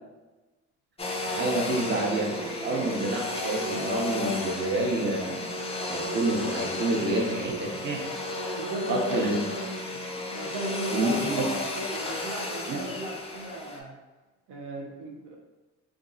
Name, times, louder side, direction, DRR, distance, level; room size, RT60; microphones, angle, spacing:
Domestic sounds home sounds, 1.0-13.8, left 2 dB, 20° left, 0.5 m, -33 dB
voice 1, 1.2-5.4 5.9-7.5 7.8-8.0 8.9-9.4 10.9-11.5 12.7-12.8, right 2 dB, 35° right, -1 dB, 0.7 m, -28 dB
voice 2, 7.0-7.8 8.5-10.0 10.3-11.5 11.9-14.0 14.5-15.4, right 1 dB, 85° right, 0 dB, 0.7 m, -37 dB
2.6 x 2.4 x 3.8 m, 1.1 s
cardioid pair, 90°, 30 cm